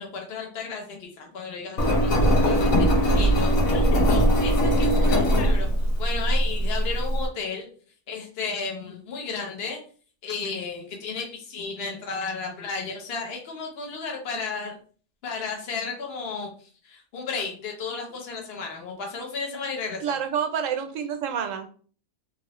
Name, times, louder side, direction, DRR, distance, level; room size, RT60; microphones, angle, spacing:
voice 1, 0.0-5.7 6.0-7.7 8.1-9.8 10.2-14.7 15.2-16.5 16.8-20.2, left 4 dB, 50° left, 2 dB, 1.0 m, -33 dB
Engine, 1.8-7.3, equal, 90° left, 1.2 m, -21 dB
voice 2, 20.0-21.7, right 7 dB, 75° right, 7 dB, 0.9 m, -28 dB
3.0 x 2.6 x 3.0 m, 0.42 s
omnidirectional pair, 1.4 m